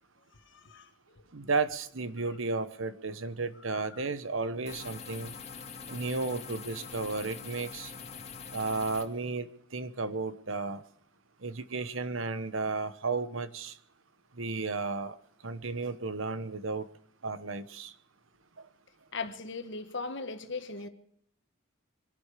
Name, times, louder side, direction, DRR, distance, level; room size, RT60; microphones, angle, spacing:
voice 1, 0.4-1.2 3.7-3.8 19.1-20.9, left 4 dB, 60° left, 1.6 m, -39 dB
voice 2, 1.3-5.3 5.9-7.9 8.5-10.8 11.4-13.8 14.3-15.2 15.4-16.9 17.2-17.9 18.6-18.7, right 3 dB, 70° right, 1.1 m, -33 dB
sound 1, 4.7-9.0, left 5 dB, 30° left, 2.2 m, -44 dB
24.5 x 11.5 x 5.0 m
head